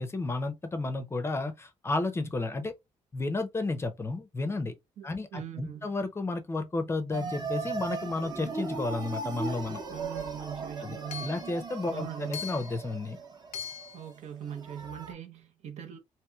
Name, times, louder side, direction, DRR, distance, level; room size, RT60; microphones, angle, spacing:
voice 1, 0.0-2.7 3.1-4.7 5.0-9.8 10.8-13.2, left 2 dB, 20° left, 0.5 m, -32 dB
voice 2, 5.0-5.9 9.9-11.4 11.9-12.5 13.9-16.0, right 9 dB, 75° right, 0.8 m, -41 dB
sound 1, 7.1-15.1, right 4 dB, 35° right, 0.7 m, -38 dB
Hammer / Chink clink, 10.2-10.3 11.1-11.5 12.3-12.8 13.5-14.0, left 7 dB, 75° left, 0.4 m, -40 dB
3.0 x 2.9 x 2.3 m
cardioid pair, 130°, 12 cm